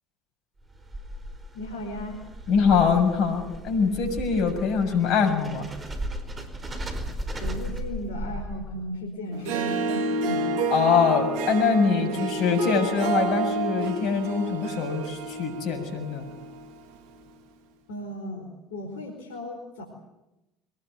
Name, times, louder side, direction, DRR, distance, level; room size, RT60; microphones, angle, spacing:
sound 1, 0.6-8.9, equal, 25° right, 4.7 m, -36 dB
voice 1, 1.5-2.2 7.4-10.5 12.0-12.1 17.9-19.8, left 1 dB, 80° left, 1 dB, 4.7 m, -36 dB
voice 2, 2.5-5.7 10.7-16.2, left 5 dB, 60° left, 4 dB, 6.9 m, -23 dB
Harp, 9.3-16.8, right 3 dB, 70° right, 2.7 m, -30 dB
24.0 x 19.5 x 9.2 m, 0.94 s
hypercardioid pair, 70°, 0 cm